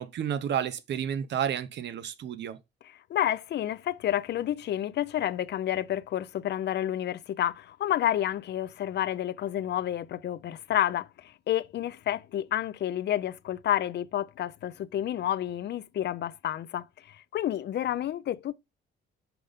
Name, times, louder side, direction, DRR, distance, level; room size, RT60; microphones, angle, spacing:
voice 1, 0.0-2.6, right 9 dB, 65° right, 0.7 m, -31 dB
voice 2, 3.1-18.5, left 11 dB, 60° left, 0.5 m, -30 dB
5.8 x 5.1 x 3.5 m
cardioid pair, 90°, 20 cm